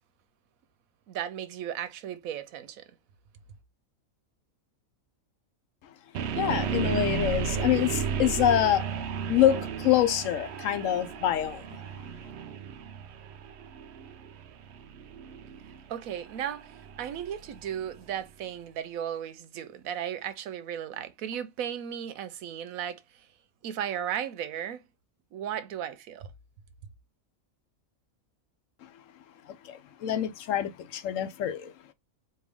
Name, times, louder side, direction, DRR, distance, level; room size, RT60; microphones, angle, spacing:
voice 1, 1.1-2.8 15.9-16.7 17.0-23.3 23.6-24.8 25.3-26.3, right 9 dB, 85° right, 1.1 m, -35 dB
sound 1, 6.1-18.1, right 7 dB, 65° right, 0.8 m, -34 dB
voice 2, 6.3-8.8 9.3-11.6 29.7-31.7, left 11 dB, 70° left, 1.0 m, -26 dB
4.4 x 2.5 x 3.5 m
omnidirectional pair, 1.4 m